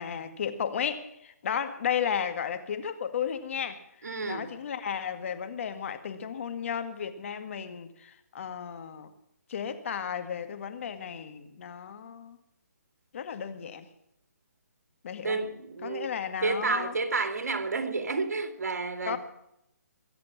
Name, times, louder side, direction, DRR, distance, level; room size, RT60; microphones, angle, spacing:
voice 1, 0.0-3.8 4.3-9.1 9.5-12.4 13.1-13.9 15.0-15.4 15.8-16.9 19.1-19.2, left 8 dB, 50° left, 1.9 m, -34 dB
voice 2, 4.0-4.5 15.2-16.1 16.4-19.2, right 3 dB, 70° right, 2.5 m, -30 dB
22.0 x 8.4 x 7.3 m
hypercardioid pair, 150°, 9 cm